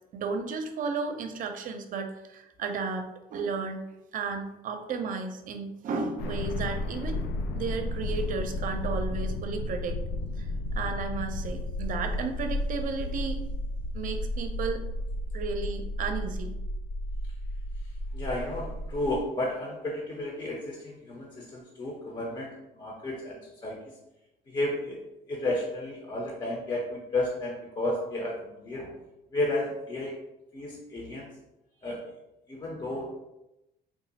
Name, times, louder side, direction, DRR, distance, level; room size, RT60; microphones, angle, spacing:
voice 1, 0.1-3.8 4.1-7.2 7.5-10.0 10.4-10.5 10.8-13.4 13.9-14.8 15.3-16.5, right 4 dB, 50° right, 5 dB, 0.5 m, -33 dB
sound 1, 6.2-19.2, left 1 dB, 80° left, 0.4 m, -33 dB
voice 2, 17.8-24.0 24.5-25.0 25.3-28.9 29.3-30.2 30.5-31.3 31.8-32.1 32.5-33.2, left 1 dB, 25° left, -1 dB, 0.6 m, -33 dB
3.6 x 2.0 x 3.9 m, 0.91 s
cardioid pair, 110°, 17 cm